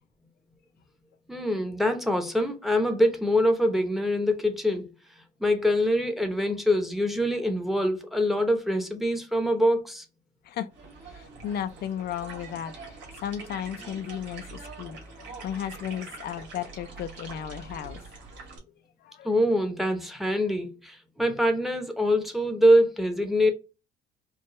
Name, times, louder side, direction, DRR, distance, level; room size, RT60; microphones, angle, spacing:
voice 1, 1.3-4.9 5.4-10.0 19.2-23.5, equal, ahead, 0.8 m, -24 dB
sound 1, 10.7-18.6, right 4 dB, 85° right, 1.9 m, -44 dB
voice 2, 11.1-18.0 19.0-19.3, left 9 dB, 60° left, 0.4 m, -35 dB
4.6 x 2.3 x 3.0 m
cardioid pair, 130°, 18 cm